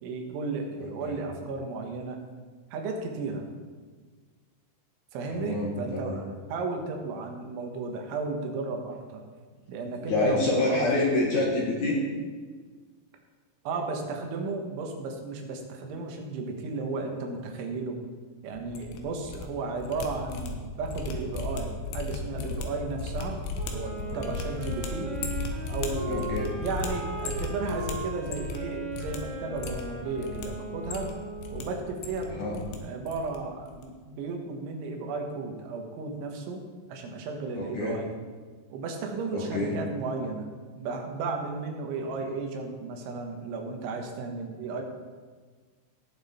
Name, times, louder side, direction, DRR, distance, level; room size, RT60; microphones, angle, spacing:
voice 1, 0.0-2.2 2.7-3.5 5.1-9.2 9.7-10.8 13.7-18.0 18.4-25.1 25.7-31.1 31.5-36.6 36.9-38.1 38.7-40.5 40.8-44.8, right 3 dB, 90° right, 3 dB, 3.9 m, -34 dB
voice 2, 0.8-1.1 5.3-6.2 10.0-12.0 26.1-26.5 32.4-32.5 37.6-38.0 39.3-39.7, left 2 dB, 60° left, -3 dB, 2.3 m, -27 dB
sound 1, 18.6-19.4 19.7-28.6 28.9-29.2 29.5-30.5 30.8-31.6 31.9-32.8 33.0-33.4 33.6-33.8, left 3 dB, 75° left, 3.2 m, -35 dB
Wind instrument woodwind instrument, 23.5-31.9, right 2 dB, 40° right, 3.3 m, -38 dB
18.0 x 7.3 x 4.4 m, 1.5 s
omnidirectional pair, 5.2 m